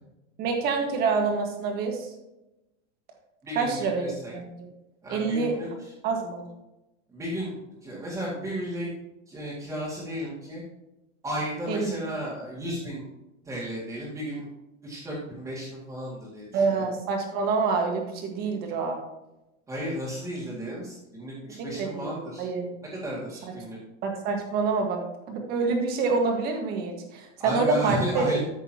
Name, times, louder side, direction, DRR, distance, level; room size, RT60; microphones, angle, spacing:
voice 1, 0.4-2.1 3.5-4.1 4.3-4.4 5.1-5.5 6.0-6.4 11.7-11.9 16.5-19.0 21.6-22.7 24.0-28.3, right 4 dB, 25° right, 2 dB, 1.7 m, -27 dB
voice 2, 3.4-4.3 5.0-5.9 7.1-8.9 9.3-10.6 11.2-13.1 13.4-14.5 14.8-16.8 19.7-22.5 22.9-23.8 27.4-28.4, equal, 10° right, -7 dB, 2.1 m, -33 dB
13.5 x 6.4 x 2.9 m, 0.95 s
supercardioid pair, 175°, 39 cm